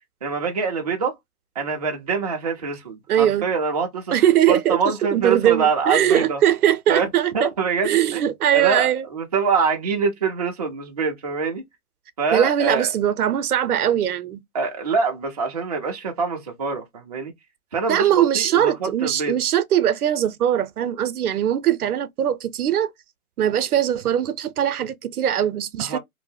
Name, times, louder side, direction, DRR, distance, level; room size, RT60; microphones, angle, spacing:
voice 1, 0.2-1.2 1.6-4.1 4.5-6.4 6.9-7.1 7.3-8.2 8.5-11.6 12.2-12.9 14.5-17.3 17.7-19.4 25.8-26.0, right 5 dB, 30° right, 0.4 m, -25 dB
voice 2, 3.1-3.5 4.1-4.8 5.1-7.5 7.8-9.0 12.3-14.4 17.9-22.9 23.4-26.0, right 10 dB, 85° right, 0.6 m, -20 dB
2.6 x 2.0 x 3.2 m
hypercardioid pair, 155°, 43 cm